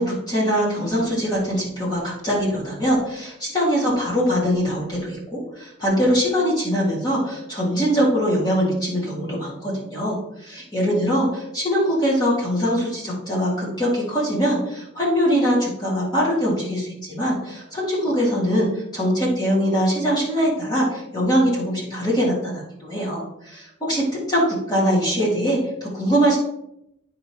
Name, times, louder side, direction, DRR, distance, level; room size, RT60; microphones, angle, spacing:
voice 1, 0.0-18.7 18.9-26.4, equal, 20° left, -6 dB, 2.1 m, -22 dB
9.4 x 4.9 x 2.9 m, 0.79 s
head